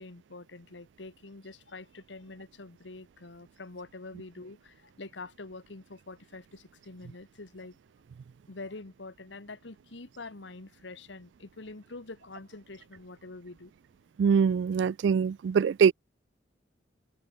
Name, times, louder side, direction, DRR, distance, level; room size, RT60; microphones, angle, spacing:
voice 1, 0.0-7.8 8.5-13.7, left 3 dB, 85° left, 1.4 m, -45 dB
voice 2, 14.2-15.9, right 6 dB, 80° right, 0.3 m, -23 dB
head